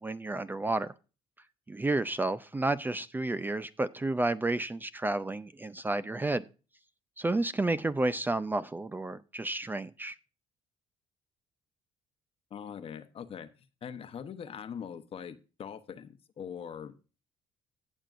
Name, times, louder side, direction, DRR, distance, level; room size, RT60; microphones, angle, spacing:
voice 1, 0.0-0.9 1.7-6.5 7.2-10.1, right 2 dB, 15° right, 0.4 m, -31 dB
voice 2, 12.5-13.5 13.8-17.0, left 7 dB, 50° left, 1.0 m, -42 dB
17.0 x 6.6 x 2.5 m
supercardioid pair, 75°, 13 cm